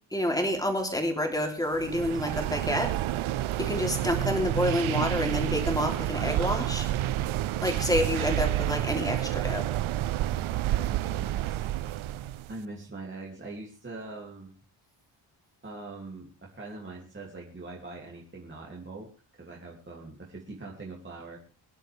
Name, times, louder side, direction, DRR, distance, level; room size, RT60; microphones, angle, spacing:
voice 1, 0.1-2.9 3.6-6.9 7.6-9.7, left 1 dB, 10° left, 3 dB, 3.1 m, -28 dB
sound 1, 1.7-12.5, right 13 dB, 80° right, 0.6 m, -29 dB
voice 2, 10.2-11.7 12.5-14.5 15.6-19.1 19.3-21.4, right 3 dB, 25° right, -2 dB, 2.7 m, -43 dB
23.5 x 11.0 x 3.4 m, 0.35 s
wide cardioid pair, 145°, 48 cm